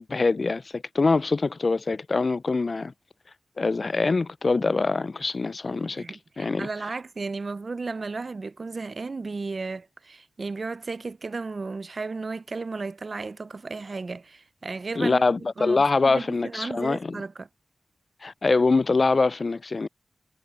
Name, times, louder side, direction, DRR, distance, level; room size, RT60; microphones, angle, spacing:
voice 1, 0.0-2.9 3.6-6.0 6.4-6.7 15.0-17.2 18.2-19.9, left 3 dB, 55° left, 0.5 m, -24 dB
voice 2, 5.9-15.2 15.6-17.5, right 3 dB, 55° right, 0.5 m, -34 dB
cardioid pair, 45°, 0 cm